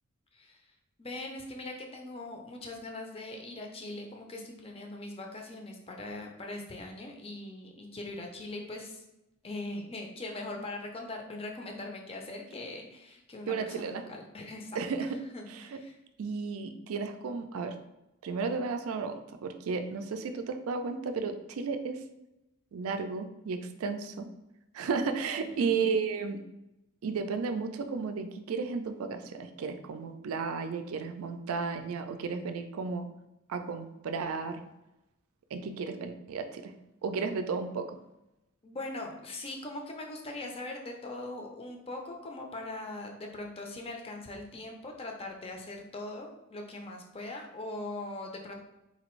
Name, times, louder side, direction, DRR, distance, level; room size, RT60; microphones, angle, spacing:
voice 1, 1.0-9.0 9.4-14.8 15.3-16.0 25.4-25.9 38.6-48.5, left 2 dB, 25° left, 2 dB, 0.5 m, -41 dB
voice 2, 13.5-14.0 14.7-15.2 15.5-15.6 16.2-17.8 18.2-22.0 22.7-24.3 24.7-26.4 27.0-33.1 33.5-34.6 35.5-36.7 37.0-38.0, right 5 dB, 80° right, 7 dB, 0.4 m, -33 dB
4.0 x 2.5 x 3.0 m, 0.93 s
head